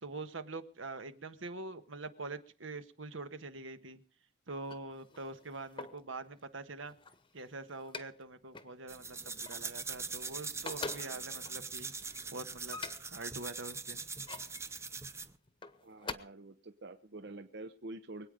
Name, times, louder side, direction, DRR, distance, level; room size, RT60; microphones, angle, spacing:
voice 1, 0.0-4.0 4.5-6.9 7.3-11.9 12.3-12.8 13.1-14.0, right 3 dB, 75° right, 10 dB, 1.4 m, -44 dB
sound 1, 4.5-6.1 6.7-8.2 8.5-8.8 9.1-10.2 10.5-13.3 13.9-14.7 15.5-16.1, left 4 dB, 25° left, 1.0 m, -46 dB
sound 2, 8.9-15.4, right 4 dB, 15° right, 0.7 m, -42 dB
voice 2, 15.8-18.3, right 2 dB, 55° right, 9 dB, 0.8 m, -47 dB
24.0 x 9.1 x 5.1 m, 0.43 s
head